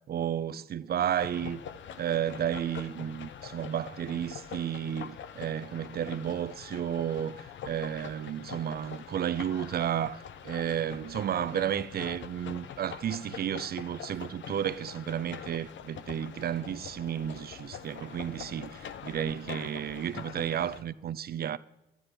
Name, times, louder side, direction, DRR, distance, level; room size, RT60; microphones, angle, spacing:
voice 1, 0.0-1.6 2.0-21.6, right 9 dB, 50° right, 0.6 m, -32 dB
sound 1, 1.2-20.8, left 8 dB, 70° left, 1.0 m, -44 dB
11.5 x 8.9 x 10.0 m
cardioid pair, 90°, 20 cm